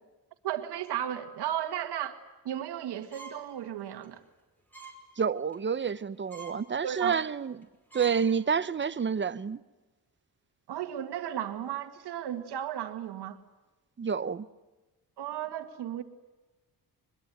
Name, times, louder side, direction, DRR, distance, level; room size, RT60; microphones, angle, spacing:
voice 1, 0.4-2.2 2.4-4.2 6.8-7.2 10.7-13.4 15.2-16.0, right 11 dB, 90° right, 2.0 m, -34 dB
sound 1, 3.1-3.5 3.9-4.1 4.7-5.0 5.4-5.6 6.0-6.1 6.3-6.6 7.1-7.2 7.6-7.7 7.9-8.2 8.6-8.8, right 4 dB, 5° left, 5.6 m, -47 dB
voice 2, 5.2-7.7 7.9-9.6 14.0-14.5, right 6 dB, 30° right, 0.8 m, -29 dB
24.0 x 22.0 x 9.2 m
cardioid pair, 125°, 39 cm